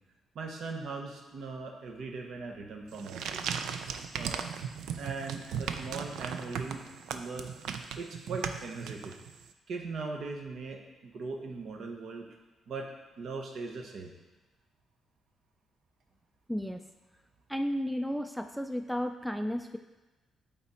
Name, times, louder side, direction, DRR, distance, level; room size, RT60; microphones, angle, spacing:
voice 1, 0.3-3.5 4.1-4.4 4.9-6.8 7.1-7.5 8.0-9.1 9.7-12.2 12.7-12.9 13.2-14.1, right 4 dB, 65° right, 3 dB, 1.0 m, -39 dB
sound 1, 2.9-9.4, right 7 dB, 85° right, 0.4 m, -37 dB
voice 2, 16.5-16.8 17.5-19.8, equal, ahead, 7 dB, 0.3 m, -33 dB
8.5 x 4.0 x 4.2 m, 1.1 s
cardioid pair, 105°, 0 cm